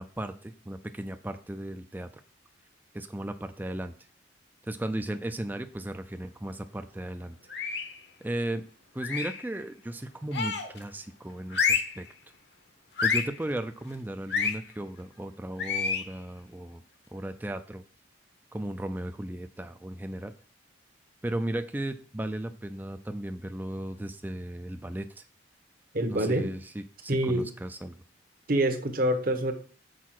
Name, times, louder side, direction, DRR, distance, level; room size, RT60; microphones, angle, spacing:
voice 1, 0.0-2.1 2.9-3.9 4.6-7.4 8.2-8.6 8.9-12.1 13.0-16.8 17.1-17.8 18.5-20.3 21.2-25.2 26.1-28.0, right 1 dB, 10° right, 7 dB, 0.4 m, -36 dB
sound 1, 7.5-8.0 9.0-9.4 10.3-10.8 11.5-12.0 13.0-13.4 14.3-14.6 15.6-16.1, left 6 dB, 60° left, 1.0 m, -28 dB
voice 2, 25.9-26.5 27.1-27.5 28.5-29.5, right 1 dB, 50° right, 7 dB, 1.0 m, -26 dB
6.4 x 4.6 x 5.9 m, 0.42 s
head